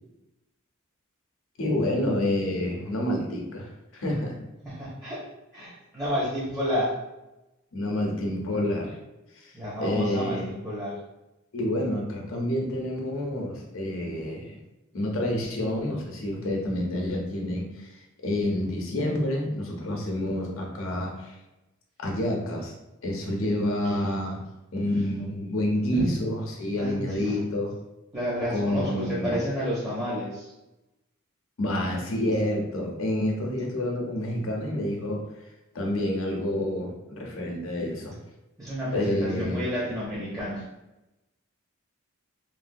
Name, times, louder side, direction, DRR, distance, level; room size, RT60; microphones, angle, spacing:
voice 1, 1.6-4.4 7.7-9.0 9.3-9.5 9.8-10.5 11.5-14.6 14.9-21.4 22.0-22.7 23.0-24.4 24.7-27.7 28.5-29.4 31.6-35.3 35.7-38.2 38.9-39.6, left 1 dB, 70° left, 0 dB, 0.7 m, -28 dB
voice 2, 4.6-5.2 5.5-7.0 9.5-11.0 25.9-26.1 26.7-27.4 28.1-30.5 38.6-40.6, equal, 15° right, -8 dB, 0.6 m, -30 dB
3.2 x 2.1 x 2.6 m, 0.98 s
head